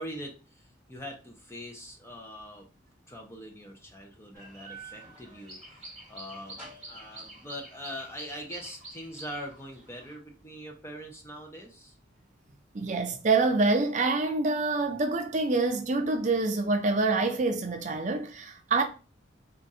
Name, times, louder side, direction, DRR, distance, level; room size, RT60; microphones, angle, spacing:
voice 1, 0.0-2.7 3.1-11.9, equal, 15° left, 0.7 m, -43 dB
sound 1, 4.3-10.1, right 2 dB, ahead, 1.7 m, -47 dB
voice 2, 12.7-18.8, right 3 dB, 40° right, 0.5 m, -26 dB
3.6 x 2.5 x 4.1 m
head